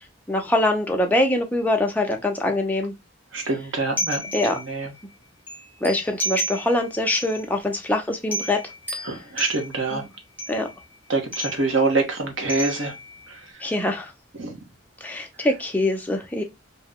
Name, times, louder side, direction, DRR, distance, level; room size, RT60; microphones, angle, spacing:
voice 1, 0.3-2.9 4.3-4.6 5.8-8.6 9.9-10.1 10.5-10.7 13.6-14.1 15.0-16.4, left 1 dB, 10° left, 0.6 m, -23 dB
voice 2, 3.3-4.2 4.7-4.9 9.0-10.0 11.1-12.9 14.4-14.6, right 3 dB, 75° right, 1.0 m, -25 dB
sound 1, 4.0-4.9 5.5-6.9 7.2-7.5 7.9-8.0 8.3-9.9 10.4-10.8 11.3-11.9 12.5-13.3, equal, 10° right, 1.3 m, -32 dB
2.7 x 2.2 x 3.6 m
head